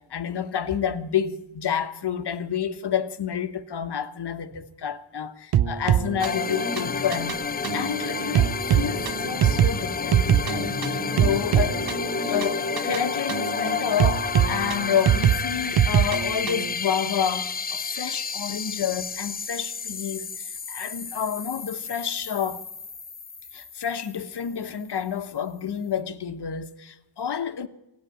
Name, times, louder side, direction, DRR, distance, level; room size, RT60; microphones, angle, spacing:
voice 1, 0.0-7.4 7.7-11.9 12.3-22.6 23.5-27.7, left 8 dB, 55° left, 1.3 m, -29 dB
sound 1, 5.5-16.7, right 10 dB, 50° right, 0.7 m, -24 dB
sound 2, 6.2-24.7, left 5 dB, 20° left, 0.5 m, -31 dB
16.5 x 8.5 x 9.0 m
cardioid pair, 65°, 49 cm